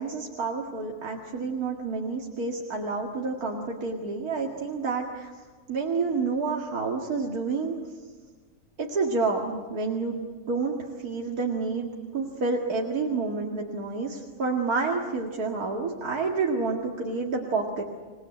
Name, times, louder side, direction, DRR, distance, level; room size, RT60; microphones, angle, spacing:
voice 1, 0.0-5.3 5.7-7.7 8.8-10.2 10.5-17.8, right 4 dB, 75° right, -1 dB, 2.5 m, -29 dB
27.5 x 19.5 x 9.1 m, 1.4 s
omnidirectional pair, 1.6 m